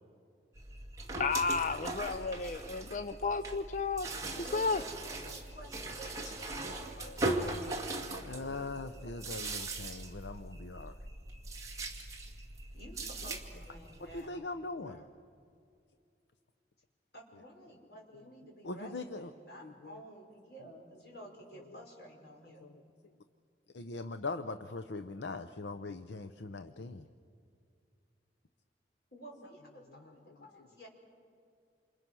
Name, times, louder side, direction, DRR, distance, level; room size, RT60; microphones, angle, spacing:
sound 1, 0.6-14.3, right 2 dB, 20° right, 2.1 m, -40 dB
voice 1, 1.2-4.1 4.4-4.8, left 4 dB, 45° left, 11 dB, 0.6 m, -32 dB
voice 2, 4.5-8.7 12.7-14.5 14.9-15.1 17.1-22.6 29.1-30.9, right 1 dB, 60° left, 0 dB, 5.2 m, -52 dB
voice 3, 8.3-10.9 14.1-15.0 18.1-18.2 18.6-19.3 19.6-20.0 22.6-22.8 23.7-27.1, left 3 dB, 75° left, 9 dB, 0.8 m, -41 dB
28.0 x 28.0 x 6.2 m, 2.4 s
head